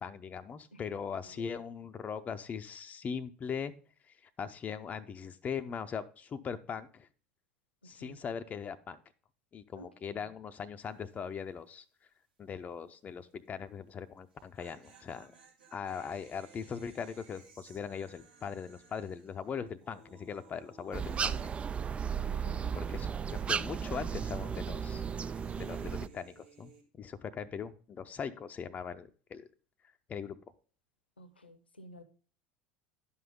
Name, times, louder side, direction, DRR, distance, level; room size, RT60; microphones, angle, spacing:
voice 1, 0.0-3.7 4.4-7.1 7.8-9.0 9.5-11.8 12.4-15.3 15.7-21.4 22.7-25.0 25.6-29.5 30.1-30.4, left 6 dB, 30° left, 9 dB, 0.6 m, -40 dB
voice 2, 1.2-1.6 7.8-8.2 9.7-10.3 22.3-22.8 31.2-32.0, equal, 80° left, 13 dB, 1.0 m, -53 dB
sound 1, 10.8-11.2 11.4-11.5 14.2-22.5 22.8-26.8, right 4 dB, 75° right, 2.4 m, -59 dB
sound 2, 20.9-26.1, right 7 dB, 20° right, 0.3 m, -35 dB
11.0 x 5.6 x 3.6 m, 0.39 s
figure-of-eight pair, 70°, 5 cm